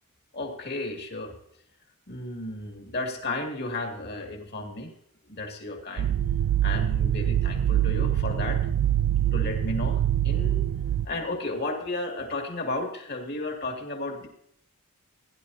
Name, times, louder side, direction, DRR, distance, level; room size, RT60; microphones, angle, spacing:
voice 1, 0.3-1.4 2.1-4.9 5.3-6.1 6.6-8.6 9.3-10.6 11.0-14.3, left 2 dB, 50° left, 2 dB, 2.5 m, -33 dB
sound 1, 6.0-11.1, right 11 dB, 80° right, 0.3 m, -24 dB
17.0 x 10.5 x 2.8 m, 0.70 s
head